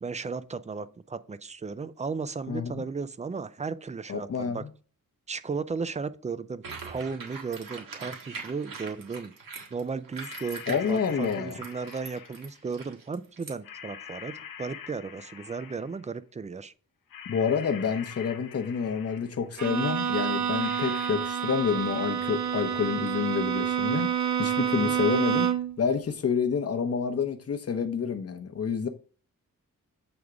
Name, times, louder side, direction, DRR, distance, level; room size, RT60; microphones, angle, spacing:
voice 1, 0.0-4.6 5.3-9.3 9.7-16.7 24.6-24.9, right 5 dB, 20° right, 0.3 m, -35 dB
voice 2, 2.5-2.8 4.1-4.6 10.7-11.6 17.3-24.1 24.4-25.5 25.8-28.9, left 6 dB, 45° left, 0.8 m, -28 dB
sound 1, 6.6-13.5, right 5 dB, 80° right, 1.7 m, -42 dB
sound 2, 10.2-12.6 13.6-16.1 17.1-19.5 20.6-21.1, left 8 dB, 80° left, 0.7 m, -44 dB
Bowed string instrument, 19.6-25.8, right 8 dB, 60° right, 0.7 m, -28 dB
7.9 x 3.5 x 4.9 m
wide cardioid pair, 170°, 33 cm